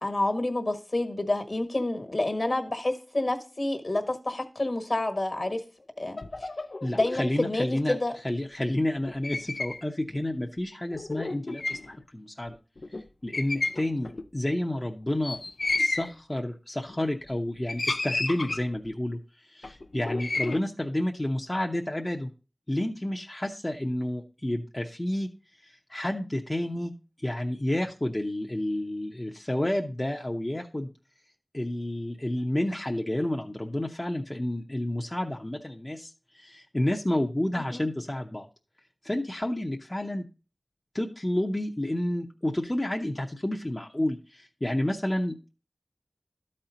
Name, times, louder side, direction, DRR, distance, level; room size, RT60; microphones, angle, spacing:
voice 1, 0.0-5.6 6.0-6.5 6.9-8.1 37.7-37.9, left 2 dB, 55° left, 1.4 m, -28 dB
sound 1, 6.2-7.3 9.0-9.8 10.1-10.2 10.9-12.0 12.5-12.6 12.8-13.0 13.3-14.2 15.2-16.1 16.9-17.3 17.7-18.9 19.6-20.6, left 2 dB, 70° left, 0.4 m, -32 dB
voice 2, 6.8-8.0 8.2-12.6 13.2-15.4 15.7-22.3 22.7-25.3 25.6-26.9 27.2-30.9 31.5-38.5 39.0-40.3 40.9-45.5, left 1 dB, 25° left, 0.7 m, -30 dB
12.5 x 4.4 x 3.9 m
wide cardioid pair, 50°, 0 cm